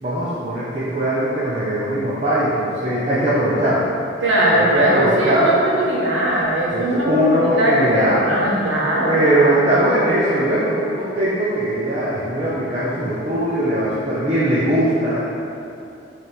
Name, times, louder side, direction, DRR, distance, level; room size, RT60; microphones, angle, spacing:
voice 1, 0.0-3.8 4.5-5.6 6.7-8.2 9.1-15.2, right 1 dB, 35° right, -10 dB, 0.8 m, -20 dB
voice 2, 4.2-9.5, right 1 dB, 85° right, -6 dB, 1.5 m, -19 dB
6.4 x 3.4 x 4.5 m, 2.7 s
head